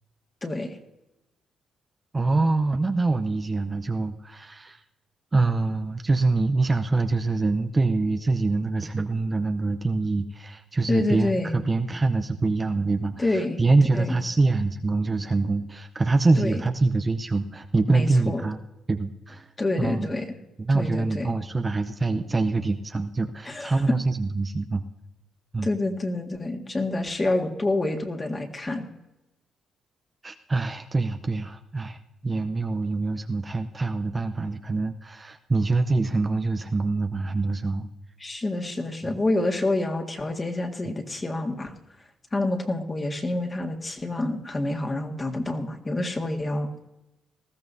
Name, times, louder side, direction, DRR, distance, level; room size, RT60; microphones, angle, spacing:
voice 1, 0.4-0.8 10.9-11.6 13.2-13.6 13.9-14.2 16.4-16.6 17.9-18.5 19.6-20.4 20.7-21.3 23.5-24.0 25.6-28.9 38.2-41.7 42.3-46.7, left 2 dB, 25° left, 3 dB, 1.8 m, -27 dB
voice 2, 2.1-4.8 5.3-18.6 18.9-19.5 19.8-20.1 20.6-24.8 25.5-25.7 30.2-37.9 39.0-39.2 40.9-41.0, right 3 dB, 25° right, 7 dB, 0.7 m, -25 dB
19.5 x 14.0 x 2.7 m, 0.95 s
cardioid pair, 90°, 0 cm